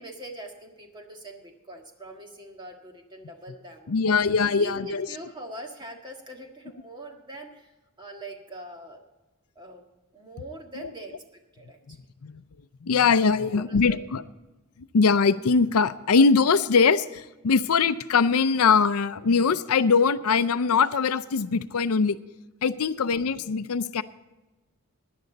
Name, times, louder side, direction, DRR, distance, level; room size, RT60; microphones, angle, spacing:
voice 1, 0.0-3.9 4.4-9.0 9.5-9.8 10.1-11.1 11.5-12.0 13.4-14.0, right 1 dB, 20° right, 2 dB, 1.6 m, -42 dB
voice 2, 3.9-5.1 10.8-10.9 11.9-12.0 12.2-12.4 12.8-14.2 14.9-22.2 22.6-24.0, left 5 dB, 80° left, 14 dB, 0.5 m, -22 dB
17.0 x 10.5 x 4.0 m, 1.1 s
head